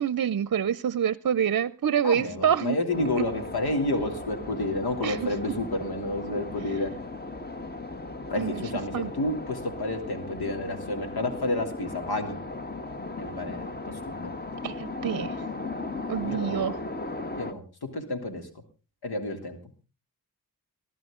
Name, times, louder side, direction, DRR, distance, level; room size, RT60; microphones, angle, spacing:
voice 1, 0.0-2.8 3.2-3.3 5.0-5.3 8.4-8.6 8.9-9.1 14.6-15.4 16.1-16.8, right 8 dB, 55° right, 18 dB, 0.6 m, -26 dB
voice 2, 2.0-6.9 8.3-12.4 13.2-14.3 16.2-16.6 17.4-17.6 17.9-18.5 19.0-19.6, left 2 dB, 85° left, 5 dB, 3.1 m, -30 dB
sound 1, 2.9-17.5, left 2 dB, 25° left, 1.5 m, -37 dB
20.5 x 13.0 x 3.8 m, 0.33 s
cardioid pair, 60°, 37 cm